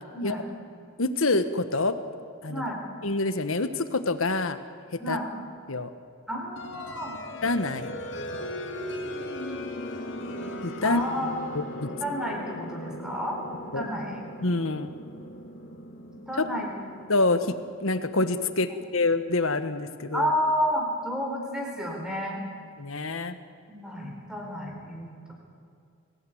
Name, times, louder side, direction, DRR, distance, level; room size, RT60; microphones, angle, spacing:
voice 1, 0.1-0.4 2.5-2.8 5.0-5.3 6.3-7.1 10.8-11.3 11.9-13.4 13.6-14.2 16.1-16.7 20.1-22.4 23.7-25.3, equal, 5° right, 0 dB, 4.4 m, -31 dB
voice 2, 1.0-2.0 2.4-2.6 3.0-4.6 4.9-5.2 5.7-5.9 7.4-7.9 10.6-11.0 11.8-11.9 13.7-13.8 14.4-14.9 17.1-17.5 17.8-20.3 22.8-23.3, left 2 dB, 80° left, 10 dB, 1.4 m, -26 dB
sound 1, 6.6-19.1, left 1 dB, 60° left, 2.5 m, -38 dB
23.0 x 17.5 x 9.4 m, 2.3 s
head